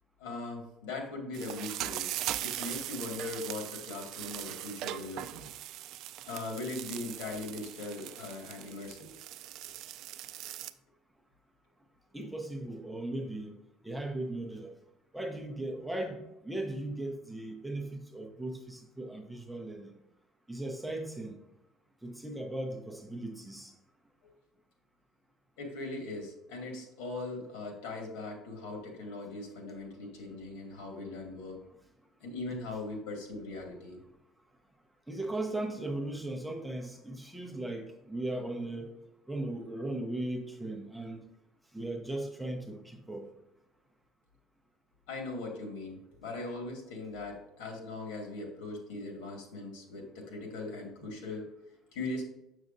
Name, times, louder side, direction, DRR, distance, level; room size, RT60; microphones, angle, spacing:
voice 1, 0.2-2.1 2.4-5.5 6.2-9.1 24.2-24.3 25.6-31.6 32.2-34.0 45.1-51.5 51.9-52.2, left 2 dB, 85° left, 2 dB, 1.9 m, -40 dB
sound 1, 1.3-10.7, right 13 dB, 50° right, 0.3 m, -40 dB
voice 2, 12.1-13.5 13.8-14.7 15.1-19.9 20.5-21.4 22.0-23.7 35.1-38.9 39.3-41.2 41.7-43.3, right 1 dB, ahead, 1 dB, 0.7 m, -37 dB
7.0 x 6.3 x 2.6 m, 0.91 s
cardioid pair, 160°, 0 cm